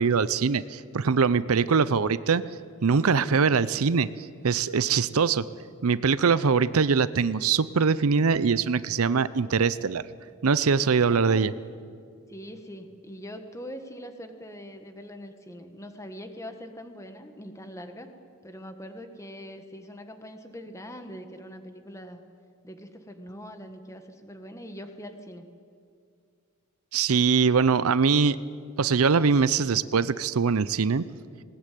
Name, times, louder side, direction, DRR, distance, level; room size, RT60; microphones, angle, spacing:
voice 1, 0.0-2.4 2.8-4.1 4.4-5.4 5.8-10.0 10.4-11.5 26.9-28.4 28.8-31.0, right 5 dB, 80° right, 17 dB, 0.6 m, -22 dB
voice 2, 11.0-11.5 12.3-18.1 18.4-22.2 22.6-25.5, equal, 15° left, 7 dB, 1.5 m, -42 dB
20.0 x 19.0 x 9.2 m, 2.3 s
head